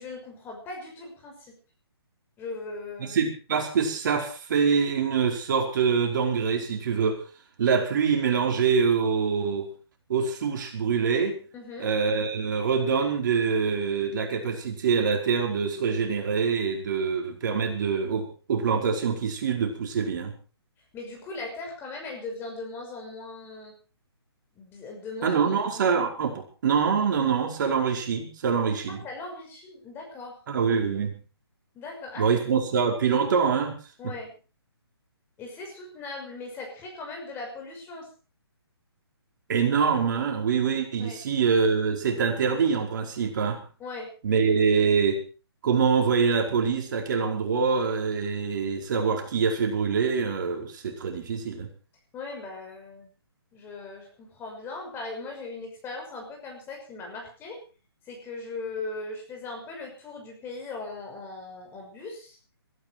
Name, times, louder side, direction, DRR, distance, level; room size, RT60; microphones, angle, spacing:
voice 1, 0.0-1.5 2.4-3.2 11.5-11.9 20.9-23.8 24.6-25.4 28.9-30.4 31.7-32.3 34.0-34.3 35.4-38.1 41.0-41.2 43.8-44.1 52.1-53.1 53.5-57.6 58.0-62.4, left 3 dB, 15° left, 2 dB, 5.8 m, -39 dB
voice 2, 3.1-7.2 7.6-9.7 10.1-11.4 11.8-20.4 25.2-29.0 30.5-31.2 32.2-33.7 34.0-34.1 39.5-43.6 44.2-45.2 45.6-51.7, right 6 dB, 45° right, 2 dB, 4.9 m, -25 dB
21.5 x 14.0 x 4.5 m, 0.36 s
hypercardioid pair, 150°, 14 cm